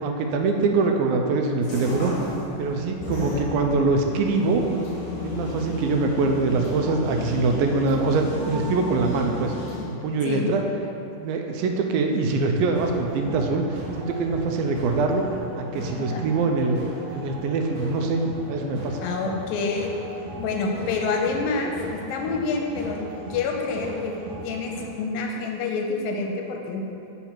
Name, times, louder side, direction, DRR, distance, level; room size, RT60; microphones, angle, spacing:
voice 1, 0.0-2.1 2.6-4.6 5.2-9.5 9.9-10.6 11.2-16.8 17.1-19.0, right 3 dB, 80° right, 3 dB, 2.3 m, -24 dB
sound 1, 1.6-9.8, left 2 dB, 60° left, 2.2 m, -33 dB
sound 2, 12.7-24.8, right 1 dB, 60° right, 1.5 m, -37 dB
voice 2, 19.0-19.9 20.4-23.0 23.3-24.2 24.4-26.8, left 4 dB, 85° left, 1 dB, 2.3 m, -27 dB
5.7 x 5.7 x 4.4 m, 2.8 s
omnidirectional pair, 4.2 m